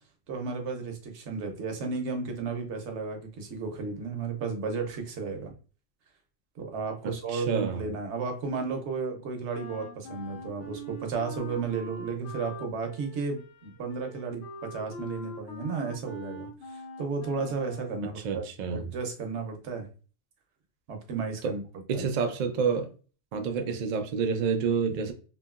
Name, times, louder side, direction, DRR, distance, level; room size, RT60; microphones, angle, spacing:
voice 1, 0.3-5.5 6.6-19.9 20.9-21.6 21.9-22.1, right 4 dB, 65° right, 1.0 m, -33 dB
voice 2, 7.0-7.8 18.2-18.9 21.4-21.5 21.9-22.9 23.3-25.1, right 5 dB, 85° right, 0.4 m, -28 dB
Wind instrument woodwind instrument, 9.5-18.1, left 1 dB, 70° left, 1.0 m, -43 dB
2.9 x 2.6 x 2.3 m
omnidirectional pair, 1.3 m